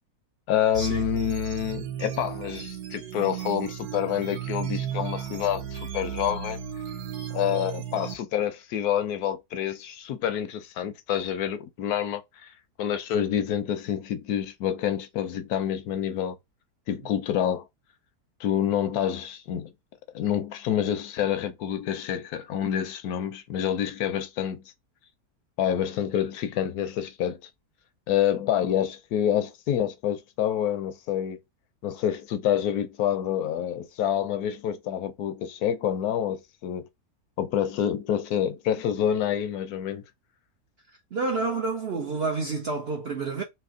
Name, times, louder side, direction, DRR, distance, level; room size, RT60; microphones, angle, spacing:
voice 1, 0.5-6.6 7.3-12.5 12.8-16.4 16.9-17.7 18.4-19.7 20.1-24.6 25.6-27.4 28.1-31.4 31.8-36.9 37.4-40.0, left 10 dB, 75° left, 1.0 m, -27 dB
sound 1, 0.7-8.1, right 9 dB, 75° right, 1.1 m, -34 dB
voice 2, 41.1-43.4, right 4 dB, 60° right, 0.7 m, -29 dB
3.3 x 2.9 x 3.6 m
omnidirectional pair, 1.7 m